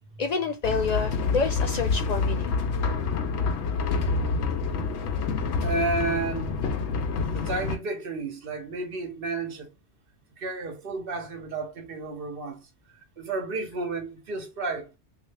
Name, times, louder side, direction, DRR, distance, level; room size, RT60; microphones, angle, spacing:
voice 1, 0.2-2.5, left 4 dB, 55° left, 0.4 m, -28 dB
sound 1, 0.6-7.8, left 4 dB, 75° left, 0.9 m, -27 dB
voice 2, 5.6-6.6 7.3-9.7 10.4-12.6 13.2-14.9, right 3 dB, 55° right, 1.1 m, -31 dB
3.2 x 2.8 x 3.2 m
omnidirectional pair, 1.2 m